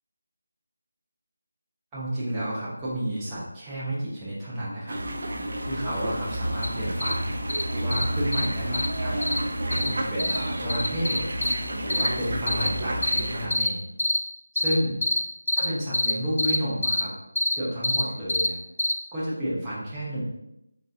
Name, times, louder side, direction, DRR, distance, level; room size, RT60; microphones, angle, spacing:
voice 1, 1.9-5.0 5.7-7.3 7.7-11.3 11.8-13.8 14.5-15.0 15.5-17.1 17.5-18.6 19.1-20.2, equal, 10° right, -10 dB, 0.8 m, -31 dB
sound 1, 4.9-13.5, right 1 dB, 55° right, 0.5 m, -30 dB
sound 2, 6.6-6.7 7.0-7.1 7.5-7.6 7.9-8.0 8.3-8.5 8.7-8.9 9.2-9.4 9.7-9.9 10.2-10.4 10.7-11.5 11.9-12.1 12.5-12.7 13.0-13.2 13.5-13.7 14.0-14.2 14.6-14.8 15.0-15.2 15.5-15.7 15.9-16.1 16.4-16.6 16.8-17.0 17.4-17.5 17.8-18.0 18.3-18.5 18.8-18.9, left 2 dB, 75° left, 0.5 m, -24 dB
3.9 x 3.8 x 2.7 m, 0.85 s
figure-of-eight pair, 175°, 0 cm